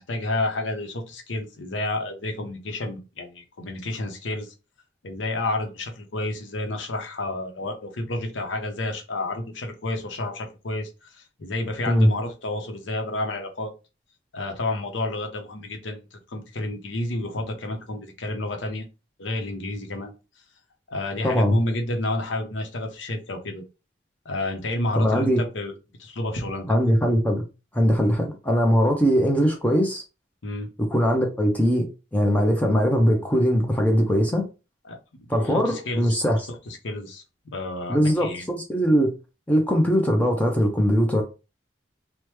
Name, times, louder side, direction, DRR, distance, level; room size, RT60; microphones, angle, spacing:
voice 1, 0.0-4.5 5.0-13.7 14.3-18.8 19.2-20.1 20.9-23.6 24.2-25.7 26.0-26.7 30.4-30.7 34.8-36.2 36.5-38.5, left 2 dB, 80° left, 0.7 m, -30 dB
voice 2, 21.2-21.6 25.0-25.4 26.7-27.4 27.7-30.0 30.8-34.5 35.3-36.4 37.9-39.1 39.5-41.2, equal, 10° left, 0.4 m, -21 dB
3.0 x 2.1 x 3.2 m
head